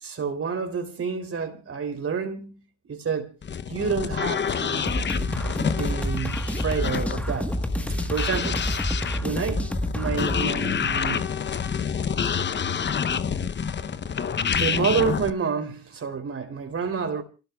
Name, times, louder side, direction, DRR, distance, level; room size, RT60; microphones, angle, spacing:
voice 1, 0.0-2.6 2.9-3.3 3.7-5.0 5.7-7.5 8.1-8.7 9.2-11.4 14.4-17.2, right 6 dB, 40° right, 3.6 m, -29 dB
sound 1, 3.4-15.3, left 7 dB, 30° left, 0.9 m, -28 dB
sound 2, 4.9-10.4, equal, 5° left, 1.5 m, -28 dB
27.5 x 18.5 x 2.4 m
hypercardioid pair, 70°, 35 cm